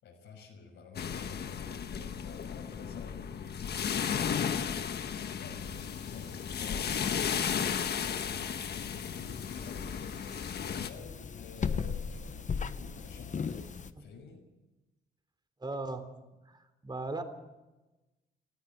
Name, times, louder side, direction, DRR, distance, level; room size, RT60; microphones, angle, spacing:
voice 1, 0.0-14.4, left 5 dB, 80° left, -2 dB, 6.3 m, -51 dB
sound 1, 1.0-10.9, left 7 dB, 55° left, 1.4 m, -34 dB
sound 2, 5.6-13.9, left 6 dB, 40° left, 1.1 m, -39 dB
voice 2, 15.6-16.0 16.4-17.2, right 2 dB, 20° right, 8 dB, 3.4 m, -37 dB
19.5 x 14.5 x 9.3 m, 1.1 s
cardioid pair, 90°, 20 cm